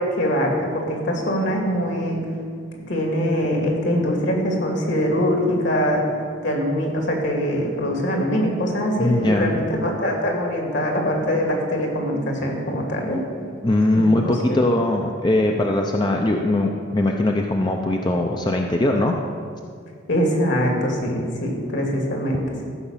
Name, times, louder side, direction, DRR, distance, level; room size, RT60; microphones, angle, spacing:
voice 1, 0.0-2.2 2.9-6.0 6.4-13.2 13.9-14.6 20.1-22.4, equal, 60° left, 0 dB, 2.5 m, -23 dB
voice 2, 9.0-9.6 13.6-19.2, left 1 dB, 20° left, 2 dB, 0.6 m, -20 dB
14.0 x 5.9 x 7.3 m, 2.2 s
head